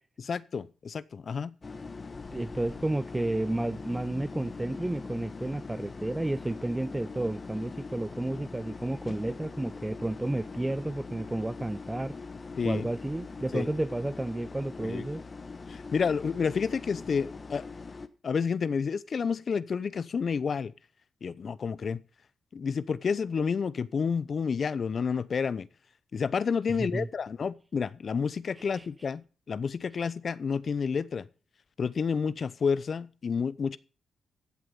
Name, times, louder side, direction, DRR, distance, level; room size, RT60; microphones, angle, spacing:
voice 1, 0.2-1.5 12.6-12.9 13.5-13.7 14.9-15.0 15.7-17.7 18.2-20.7 21.2-22.0 22.5-25.7 26.1-31.2 31.8-33.8, left 6 dB, 55° left, 0.8 m, -30 dB
sound 1, 1.6-18.1, left 4 dB, 40° left, 1.3 m, -42 dB
voice 2, 2.3-12.2 12.6-15.2 26.7-27.1 28.6-29.1, right 1 dB, 15° right, 0.7 m, -32 dB
14.5 x 7.7 x 5.4 m
supercardioid pair, 55°, 0 cm